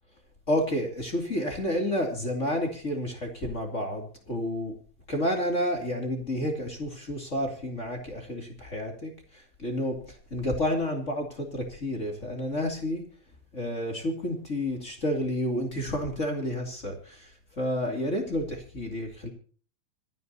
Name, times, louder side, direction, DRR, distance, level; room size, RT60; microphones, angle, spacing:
voice 1, 0.5-4.7 5.1-13.0 13.5-17.3 17.6-19.3, equal, 20° left, 3 dB, 2.0 m, -30 dB
26.5 x 10.5 x 2.8 m, 0.43 s
omnidirectional pair, 5.3 m